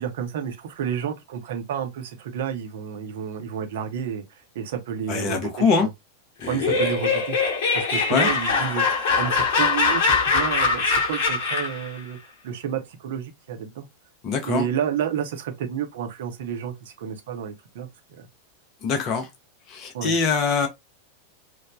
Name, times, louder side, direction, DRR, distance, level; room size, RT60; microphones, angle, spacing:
voice 1, 0.0-4.2 4.5-5.9 6.5-7.4 7.7-12.2 12.4-13.9 14.4-17.9 18.2-18.3 19.9-20.1, right 8 dB, 55° right, 0.6 m, -30 dB
voice 2, 5.1-5.9 6.4-6.8 8.1-8.3 14.2-14.6 18.8-19.3 19.7-20.7, left 5 dB, 35° left, 0.5 m, -23 dB
Laughter, 6.4-11.9, left 4 dB, 50° left, 0.9 m, -22 dB
3.1 x 2.1 x 2.3 m
figure-of-eight pair, 90°, 0 cm